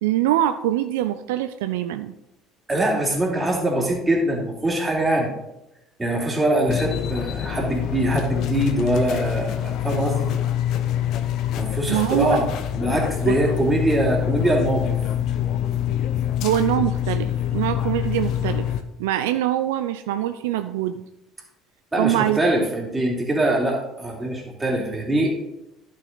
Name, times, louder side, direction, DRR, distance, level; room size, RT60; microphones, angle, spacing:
voice 1, 0.0-2.1 11.9-12.4 13.3-13.4 16.4-18.7 19.0-21.0 22.0-22.4, right 12 dB, 75° right, 10 dB, 0.3 m, -23 dB
voice 2, 2.7-5.3 6.0-10.3 11.6-12.5 12.7-15.0 21.9-25.4, right 1 dB, 20° right, -1 dB, 2.8 m, -23 dB
sound 1, 6.7-18.8, left 10 dB, 60° left, 0.7 m, -25 dB
11.0 x 6.5 x 3.9 m, 0.91 s
hypercardioid pair, 65°, 0 cm